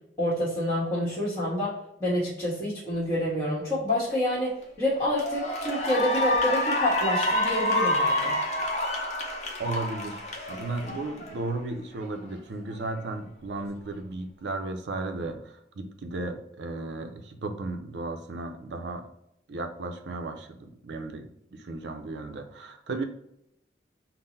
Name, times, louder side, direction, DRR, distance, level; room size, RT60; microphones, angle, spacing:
voice 1, 0.2-1.7 2.0-8.4, left 1 dB, 20° left, -10 dB, 1.3 m, -28 dB
Cheering / Applause, 4.4-4.6 5.1-11.6, left 1 dB, 40° left, 0.7 m, -28 dB
voice 2, 9.6-10.2 10.5-19.1 19.5-23.0, right 2 dB, 80° right, 6 dB, 0.5 m, -35 dB
3.7 x 2.0 x 3.9 m, 0.79 s
head